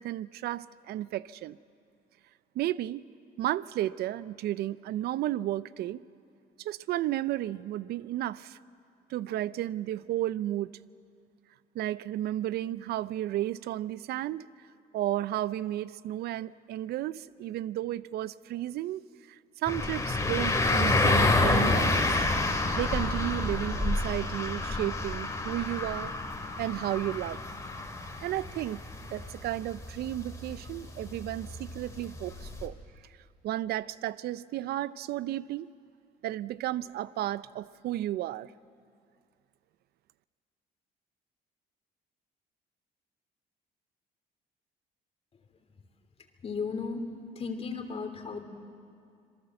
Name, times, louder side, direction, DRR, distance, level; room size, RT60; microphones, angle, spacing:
voice 1, 0.0-1.6 2.6-3.0 3.4-6.0 6.6-8.6 9.1-10.7 11.7-14.4 14.9-19.0 19.6-22.1 22.7-26.1 26.6-27.4 28.2-28.8 29.1-32.7 33.4-35.7 36.2-38.5, right 14 dB, 70° right, 17 dB, 0.5 m, -33 dB
sound 1, 19.7-32.7, left 2 dB, 20° left, 2.7 m, -29 dB
voice 2, 46.4-47.0 47.3-48.4, left 5 dB, 35° left, 6 dB, 2.9 m, -35 dB
26.5 x 22.5 x 7.7 m, 2.3 s
cardioid pair, 110°, 17 cm